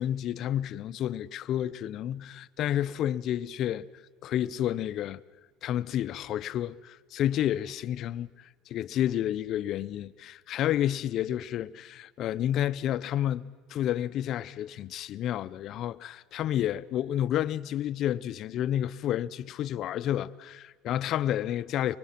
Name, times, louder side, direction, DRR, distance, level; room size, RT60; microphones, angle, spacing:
voice 1, 0.0-3.9 4.2-5.2 5.6-8.3 8.7-22.0, left 11 dB, 50° left, 0.6 m, -30 dB
25.0 x 24.0 x 5.9 m
supercardioid pair, 115°, 0 cm